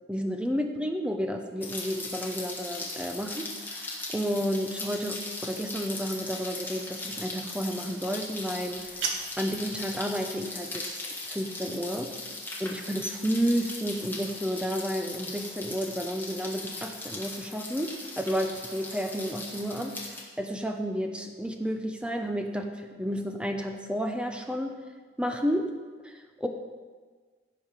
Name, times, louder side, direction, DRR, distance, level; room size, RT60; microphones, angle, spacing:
voice 1, 0.1-8.9 9.4-12.1 12.6-19.9 20.4-24.7 25.2-25.7 26.0-26.5, equal, 5° right, 4 dB, 0.8 m, -31 dB
Rain, 1.6-20.2, left 2 dB, 10° left, 1.4 m, -39 dB
sound 1, 8.6-9.6, right 5 dB, 75° right, 1.3 m, -34 dB
16.0 x 5.5 x 5.0 m, 1.5 s
head